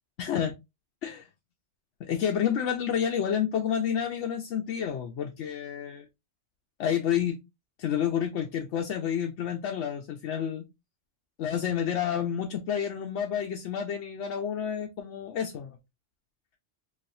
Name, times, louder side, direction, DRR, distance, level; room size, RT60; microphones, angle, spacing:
voice 1, 0.2-0.5 1.0-1.3 2.0-6.1 6.8-7.4 7.8-10.7 11.4-15.8, left 8 dB, 75° left, 0.9 m, -29 dB
4.0 x 2.6 x 2.5 m
omnidirectional pair, 1.2 m